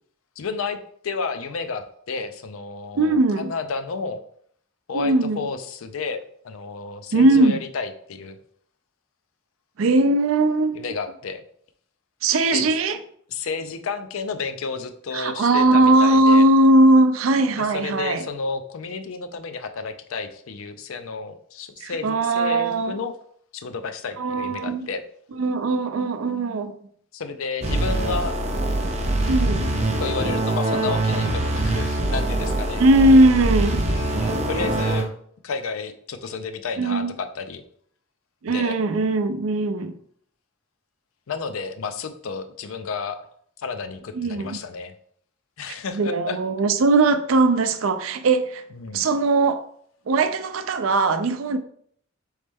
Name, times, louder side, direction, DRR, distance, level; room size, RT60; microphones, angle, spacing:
voice 1, 0.4-0.8 1.0-4.2 4.9-6.2 6.4-8.4 10.8-11.4 12.5-12.7 13.3-16.5 17.6-23.1 23.5-25.0 27.1-28.4 30.0-32.8 33.9-35.1 35.4-37.6 38.4-38.8 41.3-43.3 43.6-44.9 45.6-46.4 48.7-49.0, left 4 dB, 80° left, 0.5 m, -31 dB
voice 2, 2.9-3.6 4.9-5.5 7.1-7.6 9.8-10.9 12.2-13.0 15.1-18.2 21.8-22.9 24.2-24.8 25.4-26.7 29.3-29.7 32.8-33.8 36.8-37.1 38.4-39.9 44.1-44.6 45.9-48.6 48.9-49.6 50.1-51.6, right 2 dB, 75° right, 0.4 m, -19 dB
sound 1, 27.6-35.0, right 1 dB, 35° right, 0.7 m, -23 dB
4.2 x 3.2 x 3.4 m
head